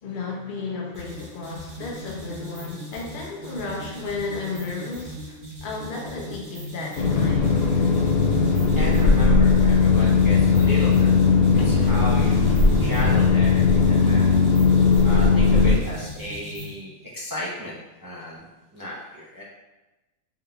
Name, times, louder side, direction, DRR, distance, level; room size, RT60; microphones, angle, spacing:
voice 1, 0.0-7.6, left 4 dB, 50° left, -1 dB, 0.6 m, -33 dB
sound 1, 0.9-16.8, equal, 70° right, 1.4 m, -39 dB
sound 2, 6.9-15.8, left 4 dB, 85° left, 1.1 m, -18 dB
voice 2, 8.4-14.4 15.0-18.5 18.7-19.4, equal, 30° right, -7 dB, 0.3 m, -34 dB
3.9 x 3.8 x 2.2 m, 1.1 s
omnidirectional pair, 1.5 m